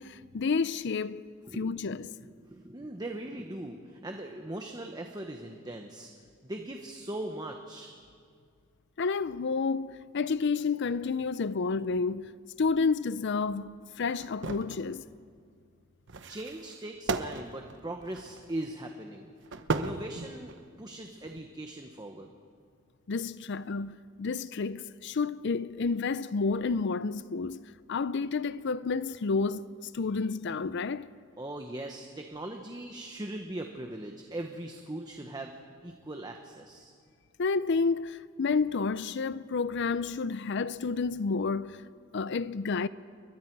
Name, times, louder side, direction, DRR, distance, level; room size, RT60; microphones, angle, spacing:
voice 1, 0.0-1.3 1.5-2.1 9.0-12.3 12.6-15.1 23.1-27.6 27.9-31.1 37.4-41.8 42.1-42.9, left 4 dB, 60° left, 0.5 m, -30 dB
voice 2, 1.5-1.8 2.2-6.1 6.4-8.0 16.3-19.3 19.7-22.3 31.4-35.5 35.8-36.9, right 1 dB, 20° right, 1.2 m, -40 dB
sound 1, 14.2-14.8 16.1-18.6 19.5-20.7 21.2-21.4, right 3 dB, 60° right, 1.0 m, -35 dB
29.0 x 23.0 x 4.7 m
head